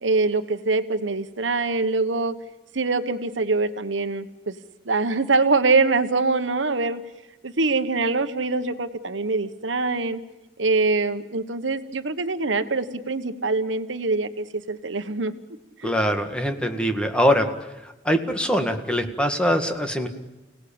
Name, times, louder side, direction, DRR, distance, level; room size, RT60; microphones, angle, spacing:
voice 1, 0.0-2.3 2.7-4.6 4.8-7.0 7.4-10.2 10.6-15.3 15.8-16.0, right 3 dB, 85° right, 10 dB, 1.3 m, -24 dB
voice 2, 15.8-17.5 18.1-20.1, equal, 5° left, 5 dB, 1.9 m, -22 dB
29.5 x 18.0 x 8.8 m, 1.0 s
head